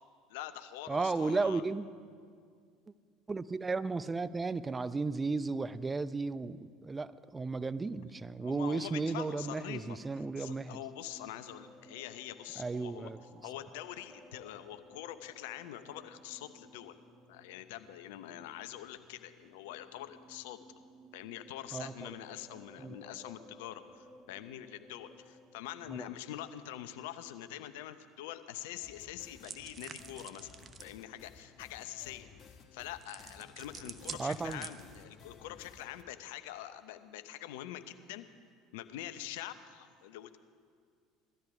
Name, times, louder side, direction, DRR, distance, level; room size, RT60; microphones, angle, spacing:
voice 1, 0.3-1.6 8.4-13.1 13.4-17.0 17.3-20.6 21.1-30.6 30.8-32.3 32.7-38.2 38.7-40.4, left 12 dB, 75° left, 10 dB, 0.8 m, -45 dB
voice 2, 0.9-1.9 3.3-10.8 12.6-13.2 21.7-22.1 22.8-23.0 25.9-26.0 34.2-34.6, right 3 dB, 20° right, 15 dB, 0.6 m, -34 dB
sound 1, 9.7-27.0, equal, 5° right, 1.5 m, -59 dB
sound 2, 28.8-36.0, left 6 dB, 45° left, 1.3 m, -57 dB
sound 3, 29.4-31.0 33.0-35.1, right 6 dB, 40° right, 1.0 m, -47 dB
18.0 x 13.0 x 5.0 m, 2.2 s
hypercardioid pair, 70°, 0 cm